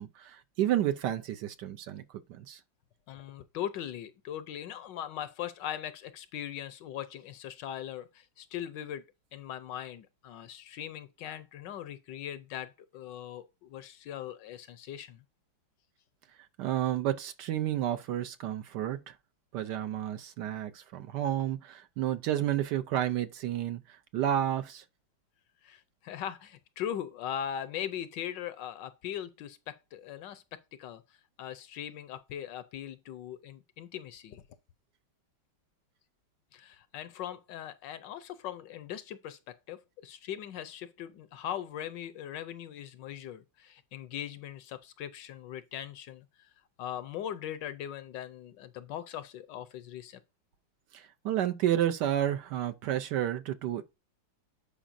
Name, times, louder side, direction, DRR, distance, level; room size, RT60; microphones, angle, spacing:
voice 1, 0.0-2.0 2.3-2.6 16.6-19.1 19.5-24.8 50.9-53.8, right 11 dB, 70° right, 1.1 m, -31 dB
voice 2, 3.1-9.0 9.3-15.2 25.6-31.0 31.4-34.4 36.5-46.5 46.8-50.2, left 10 dB, 75° left, 1.2 m, -40 dB
10.0 x 5.0 x 2.6 m
omnidirectional pair, 2.1 m